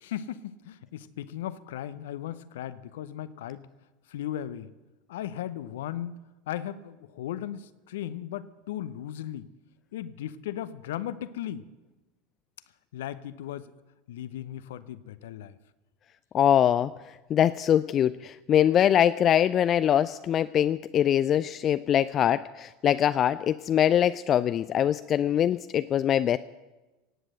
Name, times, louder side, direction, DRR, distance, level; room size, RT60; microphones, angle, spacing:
voice 1, 0.0-3.7 4.1-4.7 5.1-6.1 6.5-9.5 9.9-11.7 12.9-13.7 14.1-15.6, left 11 dB, 65° left, 14 dB, 0.7 m, -36 dB
voice 2, 16.3-16.9 17.3-26.4, left 10 dB, 35° left, 13 dB, 0.4 m, -23 dB
17.5 x 8.0 x 7.9 m, 1.1 s
figure-of-eight pair, 80°, 0 cm